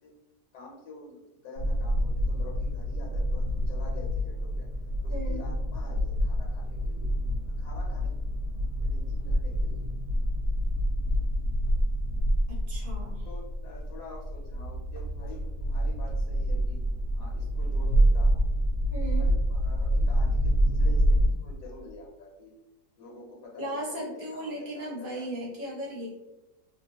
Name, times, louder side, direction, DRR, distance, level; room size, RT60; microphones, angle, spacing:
voice 1, 0.5-4.7 5.0-7.1 7.4-8.1 8.8-9.8 12.8-16.8 17.1-18.4 18.8-22.6 23.0-25.3, left 2 dB, 75° left, -2 dB, 1.2 m, -47 dB
sound 1, 1.6-21.3, equal, 70° right, 1.0 m, -27 dB
voice 2, 5.1-5.4 12.5-13.3 18.9-19.3 23.6-26.1, right 1 dB, 40° right, -5 dB, 0.8 m, -36 dB
2.7 x 2.2 x 2.8 m, 1.0 s
omnidirectional pair, 1.8 m